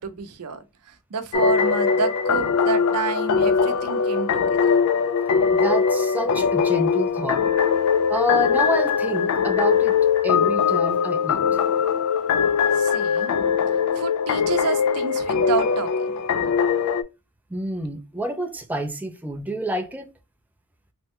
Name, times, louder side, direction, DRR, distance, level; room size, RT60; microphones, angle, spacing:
voice 1, 0.0-4.8 12.7-13.3 13.9-16.2, right 4 dB, 85° right, 0.6 m, -29 dB
sound 1, 1.3-17.0, left 6 dB, 75° left, 0.4 m, -21 dB
voice 2, 5.5-7.4 8.1-10.0 10.2-11.6 17.5-20.1, equal, 5° right, 0.3 m, -28 dB
3.4 x 2.1 x 2.7 m
head